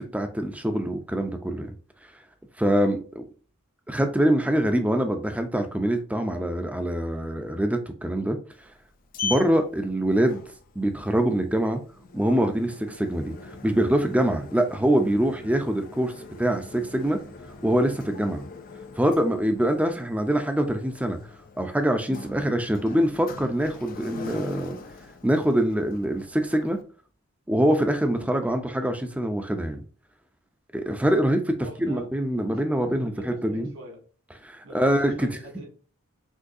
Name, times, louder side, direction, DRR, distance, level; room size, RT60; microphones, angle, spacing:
voice 1, 0.0-1.7 2.6-3.3 3.9-8.4 9.2-10.4 10.8-11.8 12.1-13.3 13.6-16.1 16.4-17.2 17.6-18.4 19.0-21.2 21.6-24.8 25.2-26.8 27.5-29.8 30.7-33.7 34.4-35.3, right 1 dB, 5° right, 0.6 m, -24 dB
Sliding door, 8.5-26.8, left 4 dB, 40° left, 0.6 m, -42 dB
voice 2, 31.6-32.2 32.5-34.0 34.6-35.6, right 1 dB, 65° right, 2.2 m, -43 dB
6.3 x 2.8 x 2.7 m
head